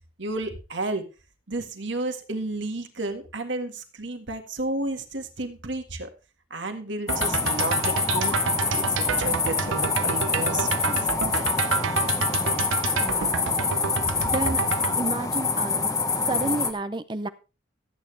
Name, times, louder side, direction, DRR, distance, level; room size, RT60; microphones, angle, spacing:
voice 1, 0.2-1.1 1.5-6.1 6.5-11.1, right 2 dB, 70° right, 6 dB, 1.8 m, -32 dB
sound 1, 7.1-16.7, left 4 dB, 15° left, 1.0 m, -26 dB
sound 2, 7.1-15.0, right 6 dB, 85° right, 0.6 m, -29 dB
voice 2, 13.0-13.6 14.2-14.6 15.0-15.9 16.3-17.3, right 2 dB, 25° right, 12 dB, 0.5 m, -30 dB
14.0 x 9.1 x 3.4 m, 0.31 s
head